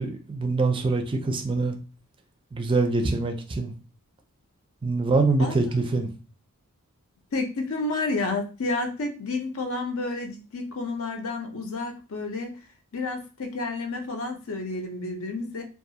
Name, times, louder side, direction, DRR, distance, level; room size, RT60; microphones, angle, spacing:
voice 1, 0.0-1.8 2.5-3.7 4.8-6.1, right 3 dB, 25° right, 0.4 m, -24 dB
voice 2, 7.3-12.6 12.9-15.6, left 3 dB, 65° left, 0.6 m, -30 dB
2.4 x 2.3 x 2.7 m
head